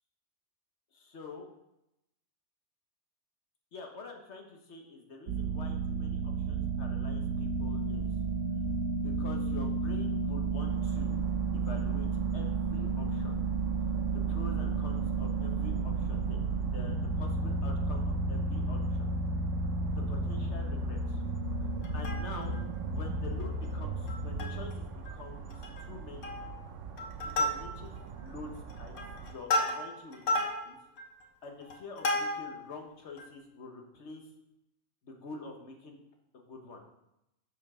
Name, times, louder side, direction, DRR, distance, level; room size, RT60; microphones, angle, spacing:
voice 1, 0.9-1.5 3.7-8.1 9.0-11.2 11.5-12.1 12.3-13.4 14.3-19.1 19.9-21.2 21.6-22.6 22.8-25.5 25.8-26.4 27.2-28.9 29.2-30.8 31.4-34.3 35.0-36.0 36.3-36.8, left 3 dB, 55° left, 2 dB, 1.4 m, -47 dB
sound 1, 5.3-24.9, right 3 dB, 85° right, 1.3 m, -32 dB
sound 2, 10.6-29.3, right 6 dB, 65° right, 1.0 m, -45 dB
Plucked string instrument, 21.8-22.6 23.1-23.2 23.4-23.6 24.1-24.7 25.1-25.2 25.5-25.9 26.2-26.6 27.0-28.0 28.6-32.7 33.2-33.3, left 1 dB, 85° left, 1.6 m, -33 dB
6.9 x 6.0 x 4.9 m, 0.87 s
omnidirectional pair, 1.5 m